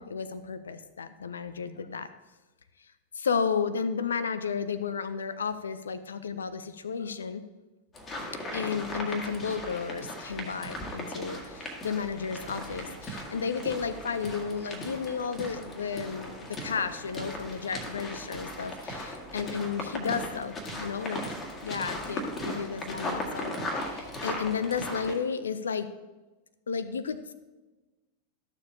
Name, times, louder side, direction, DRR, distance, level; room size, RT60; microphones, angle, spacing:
voice 1, 0.0-2.1 3.1-7.4 8.5-21.2 21.6-25.9 26.7-27.3, left 6 dB, 70° left, 13 dB, 0.5 m, -33 dB
sound 1, 7.9-25.2, left 1 dB, 20° left, 1.9 m, -38 dB
13.5 x 7.1 x 2.8 m, 1.2 s
figure-of-eight pair, 90°, 0 cm